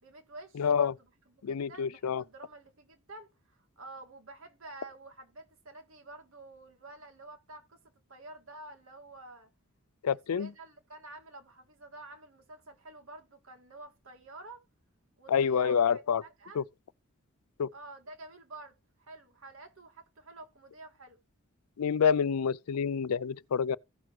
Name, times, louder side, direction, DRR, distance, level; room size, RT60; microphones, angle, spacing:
voice 1, 0.0-7.8 8.1-9.5 10.1-14.6 15.2-16.6 17.7-21.2, right 2 dB, 65° right, 2.1 m, -50 dB
voice 2, 0.6-0.9 1.4-2.2 10.0-10.5 15.3-16.2 16.6-16.7 17.6-17.7 21.8-23.8, left 7 dB, 85° left, 0.4 m, -27 dB
16.0 x 5.9 x 3.1 m
head